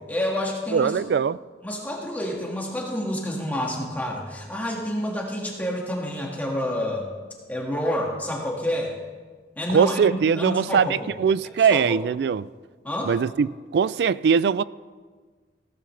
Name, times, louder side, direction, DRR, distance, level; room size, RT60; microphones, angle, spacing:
voice 1, 0.0-0.9 1.6-7.1 7.5-8.9 9.6-11.1 11.7-12.0 12.8-13.1, left 1 dB, 10° left, 1.8 m, -28 dB
voice 2, 0.7-1.4 9.7-12.5 13.0-14.6, right 6 dB, 70° right, 0.3 m, -21 dB
16.5 x 14.0 x 3.3 m
head